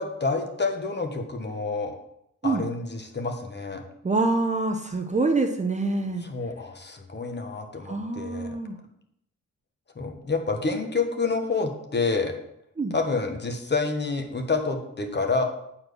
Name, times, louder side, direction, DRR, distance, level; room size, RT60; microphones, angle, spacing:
voice 1, 0.0-1.9 2.4-3.8 6.2-8.6 10.0-12.3 12.9-15.4, left 4 dB, 35° left, 4 dB, 1.3 m, -28 dB
voice 2, 4.0-6.3 7.8-8.8 12.8-12.9, right 3 dB, 20° right, 3 dB, 0.7 m, -25 dB
9.5 x 4.4 x 6.8 m, 0.76 s
wide cardioid pair, 160°, 32 cm